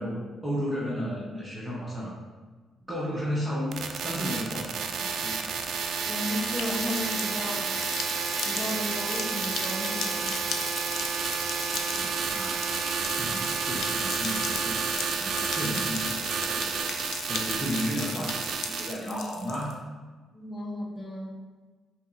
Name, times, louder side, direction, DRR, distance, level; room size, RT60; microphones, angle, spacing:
voice 1, 0.0-2.1 2.9-5.4 11.7-19.8, equal, 15° right, -6 dB, 0.9 m, -34 dB
sound 1, 3.7-18.9, right 6 dB, 65° right, 0.3 m, -30 dB
sound 2, 5.5-19.7, left 6 dB, 70° left, 0.4 m, -38 dB
voice 2, 6.0-7.7 8.4-10.4 19.0-19.2 20.3-21.4, left 1 dB, 20° left, -2 dB, 0.9 m, -34 dB
5.2 x 2.8 x 2.5 m, 1.4 s
cardioid pair, 90°, 0 cm